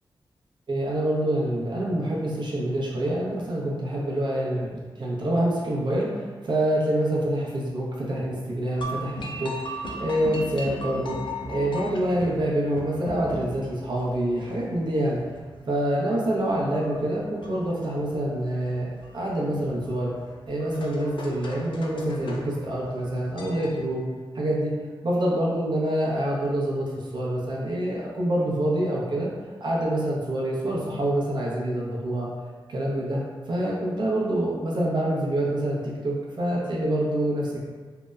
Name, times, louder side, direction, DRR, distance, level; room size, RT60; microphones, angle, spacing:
voice 1, 0.7-15.2 15.7-18.9 19.1-20.1 20.5-24.1 24.3-24.7 25.0-26.8 27.1-29.3 29.6-32.3 32.7-33.2 33.5-37.7, right 1 dB, 55° right, -5 dB, 0.6 m, -26 dB
sound 1, 8.7-23.8, left 1 dB, 60° left, 0.4 m, -39 dB
2.7 x 2.0 x 2.3 m, 1.5 s
cardioid pair, 70°, 9 cm